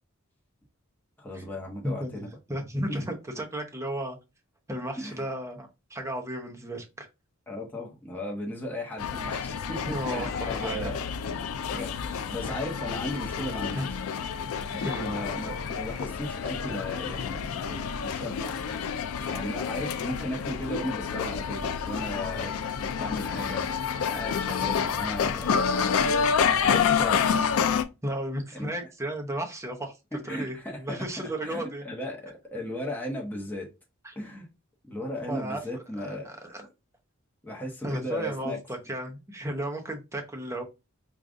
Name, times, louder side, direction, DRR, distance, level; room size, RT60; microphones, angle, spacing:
voice 1, 1.2-2.3 5.0-5.2 7.5-9.8 10.0-11.0 11.7-14.0 15.0-17.4 17.7-18.6 19.2-22.5 23.0-23.7 24.1-27.3 28.5-28.9 30.3-33.7 34.1-34.5 34.9-36.3 37.4-38.6, left 1 dB, 10° left, 0.9 m, -36 dB
voice 2, 1.8-4.2 4.7-7.1 9.9-10.9 13.7-13.9 14.2-14.4 14.7-15.2 28.0-31.9 34.0-34.2 35.3-35.6 36.2-36.7 37.8-40.6, right 1 dB, 15° right, 0.7 m, -34 dB
sound 1, 9.0-27.8, left 6 dB, 75° left, 0.4 m, -29 dB
4.8 x 2.4 x 2.5 m
head